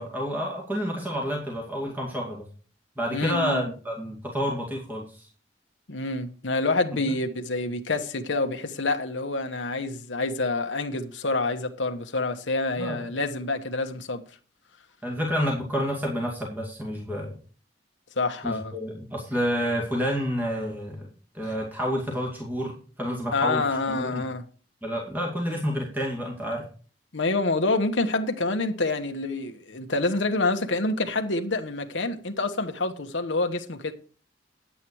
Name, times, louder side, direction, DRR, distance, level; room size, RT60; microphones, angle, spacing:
voice 1, 0.0-2.4 3.0-5.3 12.8-13.1 15.0-17.3 18.4-21.1 21.3-24.2 24.8-26.6, equal, 10° right, 2.2 m, -29 dB
voice 2, 3.1-3.6 5.9-14.2 18.2-18.7 23.3-24.4 27.1-33.9, left 2 dB, 90° left, 1.2 m, -27 dB
10.0 x 8.4 x 4.6 m
head